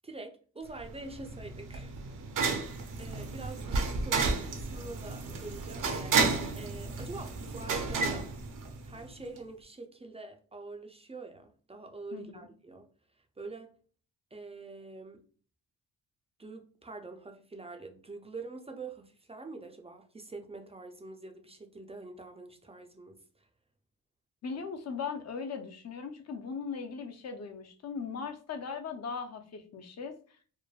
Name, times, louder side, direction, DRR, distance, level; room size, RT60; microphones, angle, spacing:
voice 1, 0.0-2.0 2.5-8.3 8.8-12.9 13.4-13.7 14.3-15.2 16.4-23.5, right 3 dB, 15° right, 0.4 m, -45 dB
sound 1, 0.8-9.1, right 4 dB, 60° right, 0.6 m, -32 dB
voice 2, 12.1-12.5 24.4-30.1, left 5 dB, 45° left, 0.6 m, -39 dB
3.2 x 2.1 x 2.3 m
cardioid pair, 80°, 37 cm